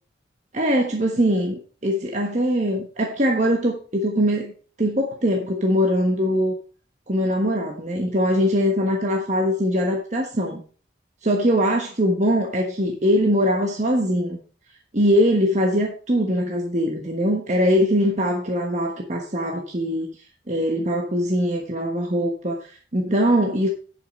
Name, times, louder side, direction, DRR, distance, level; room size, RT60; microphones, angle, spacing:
voice 1, 0.5-4.5 4.8-6.5 7.1-10.6 11.2-14.4 14.9-20.1 20.5-23.7, equal, 40° right, 1 dB, 1.3 m, -22 dB
10.5 x 5.8 x 5.3 m, 0.39 s
head